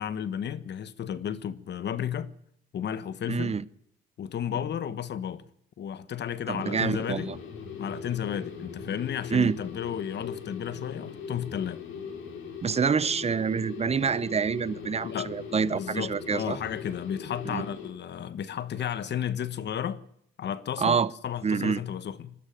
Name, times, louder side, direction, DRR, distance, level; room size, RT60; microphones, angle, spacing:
voice 1, 0.0-2.3 2.7-3.5 4.2-5.4 5.8-7.3 7.8-11.8 15.0-15.3 15.7-20.0 20.4-22.3, left 9 dB, 60° left, 1.3 m, -33 dB
voice 2, 3.3-3.6 6.5-7.4 9.3-9.6 12.6-16.6 17.5-17.6 20.8-21.1 21.4-21.8, right 6 dB, 30° right, 0.8 m, -27 dB
sound 1, 6.6-17.9, left 6 dB, 80° left, 4.7 m, -40 dB
22.5 x 12.5 x 9.3 m
cardioid pair, 90°, 20 cm